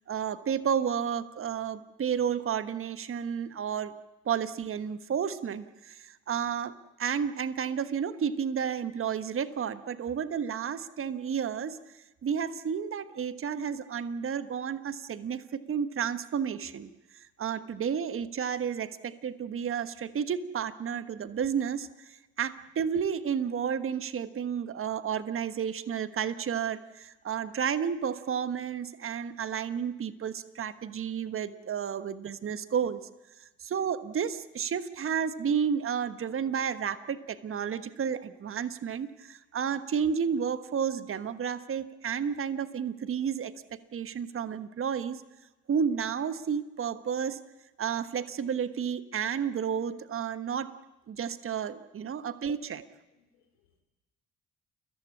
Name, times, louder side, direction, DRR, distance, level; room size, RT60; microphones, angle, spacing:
voice 1, 0.1-3.9 4.2-6.7 7.0-11.8 12.2-16.9 17.4-21.9 22.4-33.0 33.6-45.2 45.7-47.4 47.8-50.7 51.1-52.9, right 7 dB, 40° right, 12 dB, 1.3 m, -31 dB
voice 2, 52.2-52.7 53.1-53.8, left 7 dB, 80° left, 1 dB, 3.0 m, -69 dB
30.0 x 14.5 x 8.5 m, 1.1 s
hypercardioid pair, 50°, 32 cm